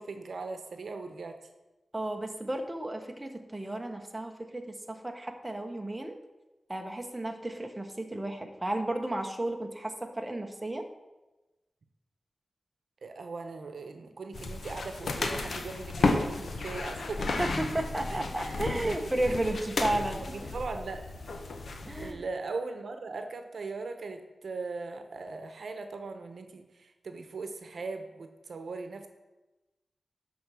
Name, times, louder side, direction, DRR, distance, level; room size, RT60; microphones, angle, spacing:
voice 1, 0.0-1.4 13.0-17.2 18.1-19.5 19.8-19.9 20.3-21.1 22.0-29.1, right 3 dB, 75° right, 7 dB, 0.9 m, -39 dB
voice 2, 1.9-6.1 6.7-10.8 17.2-20.5 21.8-22.2, right 1 dB, 15° right, 3 dB, 0.9 m, -33 dB
sound 1, 14.3-22.1, left 3 dB, 75° left, 0.9 m, -33 dB
11.5 x 4.3 x 6.2 m, 1.1 s
wide cardioid pair, 115°, 0 cm